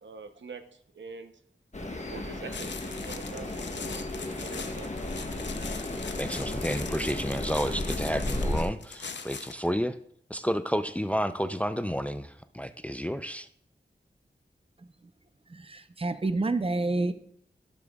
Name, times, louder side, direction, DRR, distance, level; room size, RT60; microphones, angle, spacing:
voice 1, 0.0-1.3 1.8-4.9, right 4 dB, 75° right, 8 dB, 0.8 m, -45 dB
sound 1, 1.7-8.7, left 1 dB, 35° left, 1.2 m, -34 dB
sound 2, 2.5-9.7, left 5 dB, 70° left, 0.7 m, -41 dB
voice 2, 6.2-10.0 10.3-13.5, equal, 5° left, 11 dB, 0.5 m, -31 dB
voice 3, 14.8-15.1 15.5-17.1, right 2 dB, 30° right, 11 dB, 0.7 m, -29 dB
12.0 x 7.0 x 2.4 m, 0.65 s
cardioid pair, 40°, 19 cm